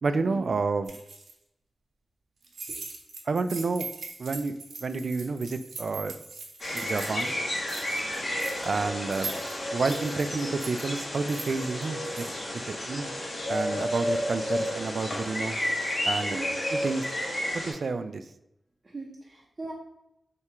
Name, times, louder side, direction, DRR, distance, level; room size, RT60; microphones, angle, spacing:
voice 1, 0.0-0.9 3.3-3.9 4.2-4.5 4.8-6.2 6.7-7.3 8.6-9.3 9.7-13.1 13.5-15.6 16.1-16.4 16.7-17.1 17.5-18.2, right 4 dB, 65° right, 10 dB, 0.3 m, -30 dB
sound 1, 0.8-1.3 2.4-7.3 7.6-8.7 9.1-12.4, right 4 dB, 85° right, 0.8 m, -41 dB
sound 2, 6.6-17.7, left 1 dB, 45° left, 1.3 m, -31 dB
voice 2, 18.8-19.7, right 3 dB, 35° right, -2 dB, 0.7 m, -40 dB
3.4 x 2.8 x 4.3 m, 0.86 s
wide cardioid pair, 75°, 0 cm